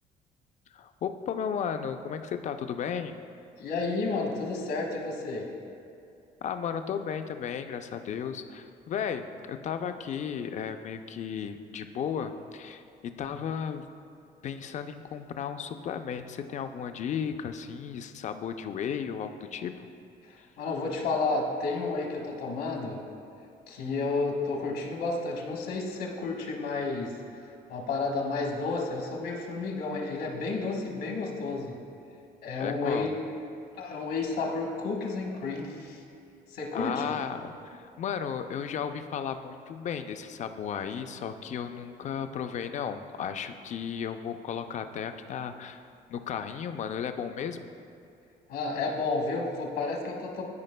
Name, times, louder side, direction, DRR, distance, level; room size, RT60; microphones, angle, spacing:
voice 1, 0.7-3.2 6.4-12.8 13.2-13.8 14.4-19.9 32.6-33.1 36.7-45.8 46.1-47.7, left 7 dB, 45° left, 8 dB, 0.4 m, -34 dB
voice 2, 3.6-5.5 13.3-13.4 20.2-23.0 23.7-27.2 27.7-31.8 32.4-33.2 33.8-36.0 36.5-37.1 48.5-50.4, left 3 dB, 70° left, 0 dB, 1.2 m, -31 dB
13.0 x 4.8 x 2.2 m, 2.6 s
cardioid pair, 110°, 17 cm